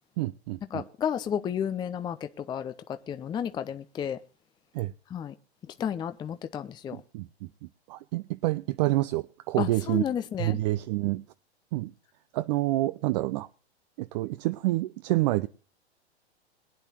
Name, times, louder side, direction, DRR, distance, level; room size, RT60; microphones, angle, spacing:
voice 1, 0.2-0.8 4.7-4.9 6.9-10.0 10.4-11.2 11.7-11.9 12.3-13.5 14.0-15.5, right 18 dB, 40° right, 0.6 m, -28 dB
voice 2, 0.7-2.7 3.1-4.2 5.1-5.3 5.8-7.0 9.6-10.6, left 8 dB, 15° left, 0.6 m, -32 dB
22.0 x 10.0 x 2.9 m
hypercardioid pair, 110°, 32 cm